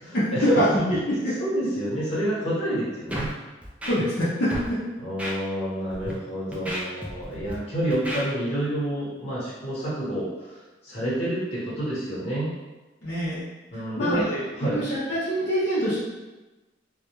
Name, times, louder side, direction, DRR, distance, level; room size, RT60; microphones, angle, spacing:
voice 1, 0.0-0.6 1.4-3.3 5.0-10.6 10.8-12.5 13.7-14.8, right 1 dB, 35° left, -8 dB, 1.0 m, -28 dB
voice 2, 0.7-1.3 3.9-4.8 13.0-13.4 14.0-14.2 14.6-16.0, equal, 55° left, -10 dB, 0.6 m, -25 dB
Scratching (performance technique), 3.1-3.3 3.6-4.2 4.5-4.7 5.2-5.3 5.9-6.1 6.5-7.5 7.9-8.2, equal, 5° right, 0.3 m, -32 dB
2.2 x 2.1 x 2.9 m, 1.1 s
head